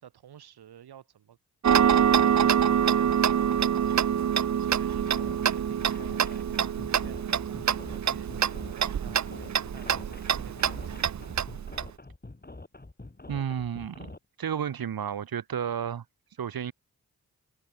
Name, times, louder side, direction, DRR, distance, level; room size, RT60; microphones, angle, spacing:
voice 1, 0.0-1.4 1.7-4.0 4.5-8.3 8.7-11.1, right 10 dB, 90° right, 2.1 m, -51 dB
Tick-tock, 1.6-11.9, right 8 dB, 50° right, 0.7 m, -25 dB
sound 1, 4.9-14.2, left 2 dB, 25° left, 6.9 m, -46 dB
voice 2, 13.3-14.1 14.4-16.7, right 8 dB, 70° right, 1.4 m, -32 dB
cardioid pair, 55°, 37 cm